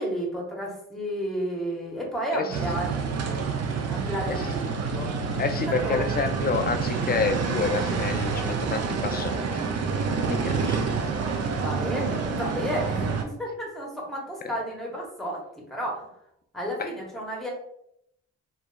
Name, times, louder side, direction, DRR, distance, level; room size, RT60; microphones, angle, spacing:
voice 1, 0.0-2.9 3.3-3.5 3.9-5.1 5.7-6.1 11.2-15.4 15.7-16.1 16.5-17.5, equal, ahead, -2 dB, 0.9 m, -32 dB
sound 1, 2.5-13.2, right 5 dB, 55° right, 0.5 m, -28 dB
voice 2, 5.4-9.4 10.3-10.8 16.8-16.9, left 5 dB, 30° left, 8 dB, 0.4 m, -28 dB
2.7 x 2.2 x 2.2 m, 0.76 s
cardioid pair, 55°, 31 cm